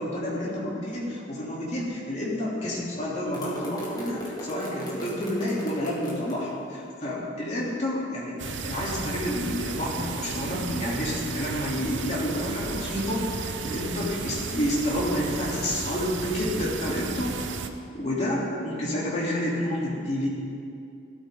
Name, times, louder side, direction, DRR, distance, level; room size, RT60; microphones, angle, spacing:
voice 1, 0.0-17.3 17.9-20.3, left 1 dB, 35° left, -6 dB, 3.4 m, -29 dB
sound 1, 3.3-6.4, equal, 20° left, 2.3 m, -36 dB
sound 2, 8.4-17.7, right 4 dB, 75° right, 0.8 m, -34 dB
17.0 x 13.0 x 3.9 m, 2.5 s
head